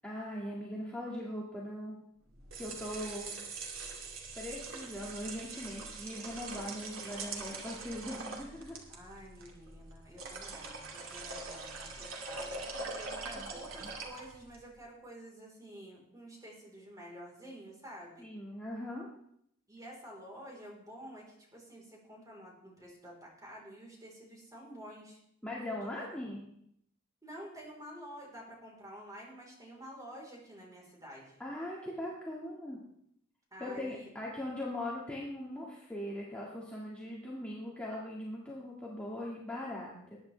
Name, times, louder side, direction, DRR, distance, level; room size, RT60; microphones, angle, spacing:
voice 1, 0.0-2.0 2.6-3.3 4.4-8.8 13.3-13.9 18.2-19.1 25.4-26.4 31.4-32.8 33.6-40.2, left 1 dB, 5° left, -5 dB, 2.0 m, -40 dB
sound 1, 2.3-14.6, right 3 dB, 80° right, 2.4 m, -43 dB
voice 2, 8.9-18.3 19.7-25.2 25.7-26.2 27.2-31.4 33.5-34.1, equal, 20° right, -2 dB, 4.1 m, -50 dB
20.0 x 9.8 x 3.4 m, 0.71 s
head